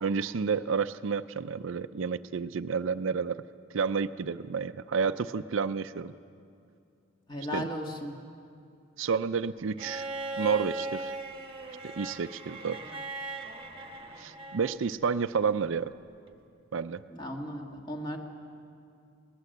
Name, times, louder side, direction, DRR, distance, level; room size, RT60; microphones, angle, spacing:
voice 1, 0.0-3.4 3.7-6.1 7.5-7.7 9.0-10.0 10.4-11.1 11.8-12.8 14.2-15.9 16.7-17.0, right 5 dB, 65° right, 12 dB, 0.5 m, -30 dB
voice 2, 7.3-8.2 17.0-18.2, equal, 20° left, 2 dB, 1.8 m, -36 dB
Bowed string instrument, 9.8-14.8 16.3-16.4, right 2 dB, 25° right, 1.3 m, -38 dB
19.5 x 19.5 x 7.9 m, 2.4 s
head